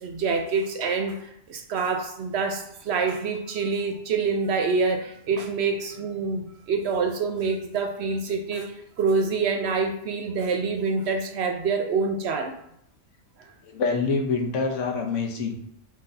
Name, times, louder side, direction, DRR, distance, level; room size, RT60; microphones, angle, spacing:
voice 1, 0.0-8.7 9.0-12.5, right 4 dB, 65° right, 4 dB, 0.8 m, -26 dB
voice 2, 13.6-15.6, left 4 dB, 80° left, 2 dB, 1.2 m, -26 dB
5.7 x 3.1 x 2.7 m, 0.73 s
omnidirectional pair, 1.3 m